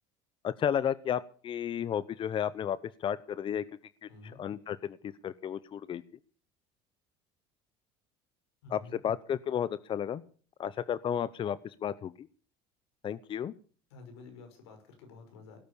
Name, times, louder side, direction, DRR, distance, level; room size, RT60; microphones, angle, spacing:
voice 1, 0.4-3.6 4.0-4.1 4.4-6.0 8.7-10.2 10.6-12.3 13.0-13.5, left 9 dB, 40° left, 16 dB, 0.8 m, -33 dB
voice 2, 8.6-9.0 13.9-15.6, left 4 dB, 90° left, 5 dB, 5.8 m, -50 dB
18.0 x 10.5 x 6.9 m, 0.42 s
supercardioid pair, 95°, 13 cm